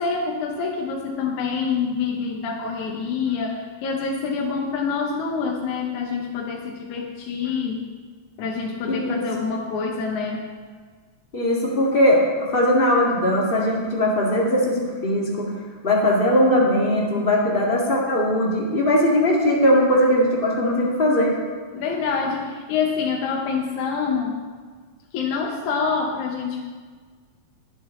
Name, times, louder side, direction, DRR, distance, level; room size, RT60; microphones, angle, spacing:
voice 1, 0.0-7.9 8.4-10.4 21.8-24.4 25.1-26.6, left 5 dB, 85° left, 0 dB, 2.5 m, -26 dB
voice 2, 8.9-9.3 11.3-15.5 15.8-21.4, left 1 dB, 20° left, -3 dB, 2.0 m, -20 dB
20.5 x 7.7 x 3.8 m, 1.5 s
omnidirectional pair, 3.3 m